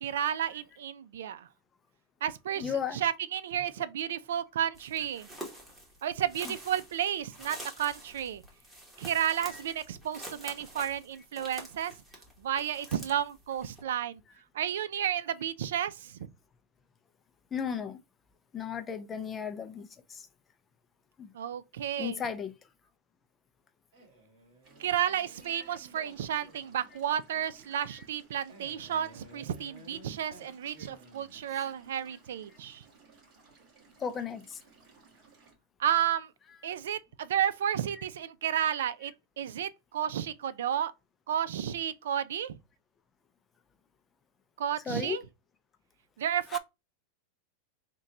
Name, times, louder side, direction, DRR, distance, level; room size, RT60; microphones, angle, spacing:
voice 1, 0.0-1.5 2.2-2.6 3.0-5.3 6.0-8.4 9.0-11.9 12.4-14.2 14.5-16.3 21.3-22.2 24.8-32.8 35.8-36.3 36.6-39.1 39.4-40.9 41.3-42.6 44.6-45.2 46.2-46.6, right 10 dB, 90° right, 0.4 m, -32 dB
voice 2, 2.6-3.0 6.4-6.6 9.5-9.6 17.5-18.0 18.5-20.3 21.2-21.3 22.0-22.7 25.5-25.6 27.9-28.1 30.8-30.9 31.5-31.7 34.0-34.6 36.6-36.7 37.9-38.0 44.8-45.2 46.5-46.6, left 7 dB, 15° left, 0.4 m, -36 dB
sound 1, 4.7-13.8, right 1 dB, 10° right, 1.1 m, -47 dB
Male speech man speaking, 23.9-26.9 28.5-31.5, right 2 dB, 55° right, 1.8 m, -55 dB
sound 2, 24.6-35.5, right 4 dB, 30° right, 2.4 m, -60 dB
3.7 x 2.2 x 4.1 m
supercardioid pair, 160°, 0 cm